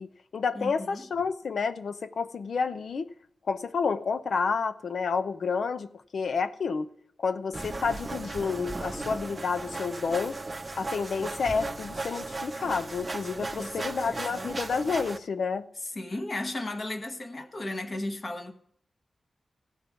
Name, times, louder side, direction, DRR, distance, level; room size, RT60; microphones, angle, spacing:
voice 1, 0.0-3.1 3.5-6.9 7.2-10.4 10.8-15.7, left 5 dB, 70° left, 0.7 m, -30 dB
voice 2, 0.5-1.1 13.6-14.6 15.8-18.5, left 2 dB, 35° left, 1.3 m, -35 dB
sound 1, 7.5-15.2, right 2 dB, 20° right, 0.7 m, -36 dB
15.5 x 5.4 x 9.2 m
wide cardioid pair, 170°, 0 cm